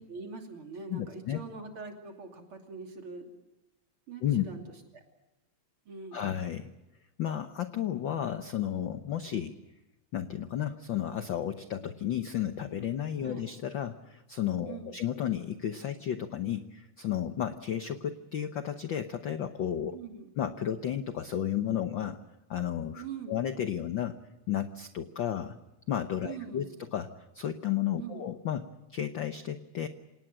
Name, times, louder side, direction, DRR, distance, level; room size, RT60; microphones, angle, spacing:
voice 1, 0.0-3.2 4.1-4.6 5.9-6.3 13.2-13.5 14.7-15.0 19.9-20.3 23.0-23.4 26.2-26.8 28.0-28.3, right 4 dB, 45° right, 3 dB, 3.6 m, -43 dB
voice 2, 0.9-1.4 4.2-4.4 6.1-6.7 7.2-9.6 10.1-20.0 20.4-22.2 22.5-24.2 24.5-25.6 25.9-26.7 26.9-28.7 28.9-29.9, left 10 dB, 70° left, 9 dB, 1.1 m, -33 dB
26.5 x 19.0 x 7.6 m, 1.0 s
omnidirectional pair, 3.3 m